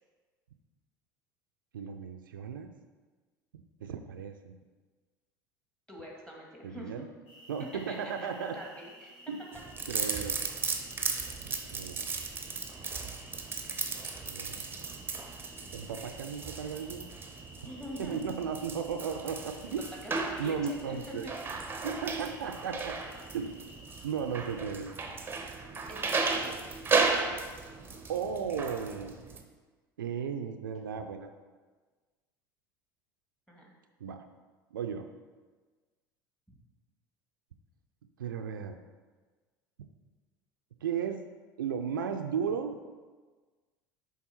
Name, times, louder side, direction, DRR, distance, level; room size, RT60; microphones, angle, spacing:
voice 1, 1.7-2.7 3.8-4.6 6.6-7.1 7.5-8.6 9.3-9.4 9.9-10.4 11.7-12.1 14.3-14.6 15.7-17.0 18.0-19.8 20.4-21.3 21.8-23.0 23.3-23.5 24.0-24.9 28.1-29.2 30.0-31.3 34.0-34.2 34.7-35.1 38.2-38.8 40.8-41.2 41.6-42.8, right 7 dB, 75° right, 7 dB, 0.4 m, -35 dB
voice 2, 5.9-6.9 7.9-8.3 8.5-9.1 10.1-10.3 17.6-18.2 19.7-19.8 20.0-21.3 25.9-26.6 33.5-33.7, equal, 5° left, -2 dB, 1.8 m, -44 dB
sound 1, 7.3-24.6, equal, 55° left, 2.1 m, -53 dB
sound 2, 9.5-29.4, right 4 dB, 20° right, 0.7 m, -35 dB
7.4 x 3.5 x 4.4 m, 1.4 s
figure-of-eight pair, 70°, 11 cm